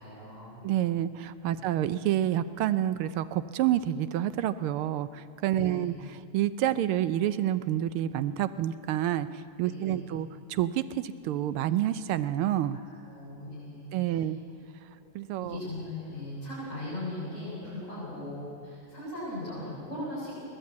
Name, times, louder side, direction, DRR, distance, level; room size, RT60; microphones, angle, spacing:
voice 1, 0.0-0.6 1.4-1.6 5.5-5.9 9.6-10.0 12.7-14.2 15.4-20.4, left 1 dB, 35° left, -10 dB, 7.4 m, -39 dB
voice 2, 0.6-12.8 13.9-14.4 15.1-15.6, right 12 dB, 90° right, 13 dB, 1.6 m, -28 dB
23.5 x 18.0 x 8.5 m, 2.4 s
omnidirectional pair, 2.3 m